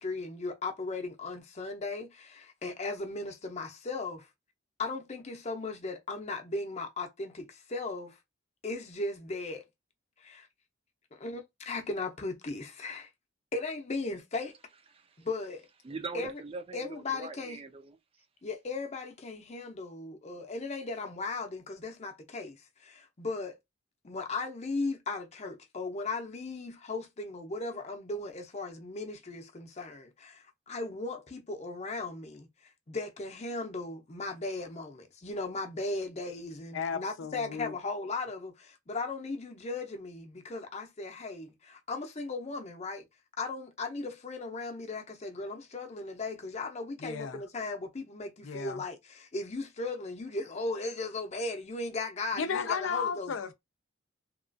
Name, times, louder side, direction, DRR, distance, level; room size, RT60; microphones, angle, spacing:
voice 1, 0.0-4.3 4.8-8.2 8.6-9.7 10.2-10.5 11.1-13.1 13.5-14.5 15.2-15.7 16.1-16.3 16.7-17.6 18.4-23.6 24.0-43.0 43.4-53.3, left 3 dB, 35° left, 0.6 m, -37 dB
voice 2, 14.9-15.3 15.8-18.0, right 4 dB, 30° right, 0.4 m, -42 dB
voice 3, 36.7-37.7 47.0-47.4 48.4-48.8 52.4-53.5, left 6 dB, 90° left, 0.5 m, -34 dB
2.9 x 2.3 x 2.5 m
head